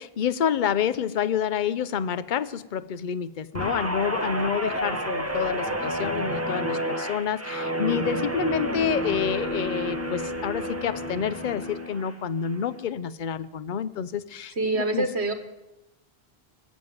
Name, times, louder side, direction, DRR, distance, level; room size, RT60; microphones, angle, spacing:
voice 1, 0.0-15.1, left 8 dB, 50° left, 14 dB, 0.8 m, -28 dB
Guitar, 3.5-12.1 12.5-12.8, right 1 dB, 15° right, 1.4 m, -30 dB
voice 2, 14.5-15.3, right 2 dB, 85° right, 6 dB, 1.9 m, -25 dB
20.5 x 7.3 x 9.3 m, 0.98 s
omnidirectional pair, 1.1 m